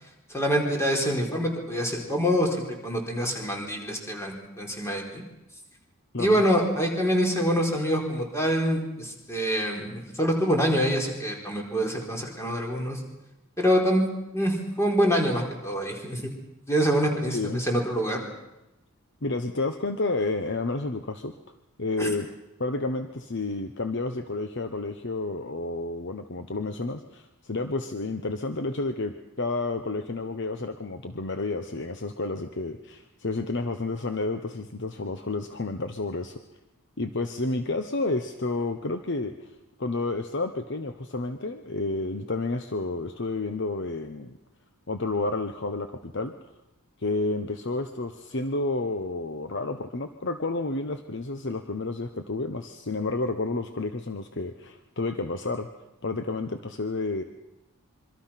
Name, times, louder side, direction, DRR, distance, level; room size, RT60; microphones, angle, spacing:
voice 1, 0.3-5.2 6.2-13.0 13.6-14.1 14.3-16.3 16.7-18.3 22.0-22.1, equal, 10° left, 0 dB, 4.4 m, -25 dB
voice 2, 17.3-17.7 19.2-21.3 21.8-22.3 22.6-36.4 37.0-39.5 39.8-44.4 44.9-46.3 47.0-55.7 56.0-57.2, left 2 dB, 55° left, 7 dB, 1.1 m, -30 dB
26.0 x 24.5 x 5.9 m, 0.95 s
head